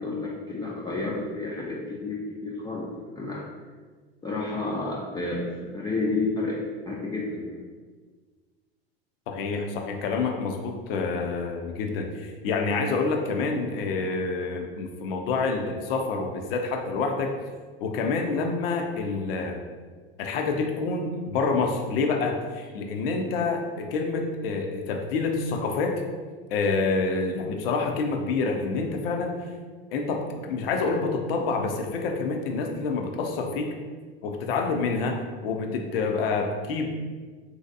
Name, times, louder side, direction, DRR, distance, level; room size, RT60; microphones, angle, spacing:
voice 1, 0.0-3.5 4.2-6.6 6.8-7.6, left 3 dB, 15° left, -4 dB, 0.4 m, -30 dB
voice 2, 9.3-17.3 17.8-19.6 20.2-26.0 26.5-29.4 29.9-33.7 34.2-36.9, left 4 dB, 70° left, 3 dB, 0.5 m, -27 dB
3.1 x 2.7 x 2.6 m, 1.5 s
hypercardioid pair, 80°, 30 cm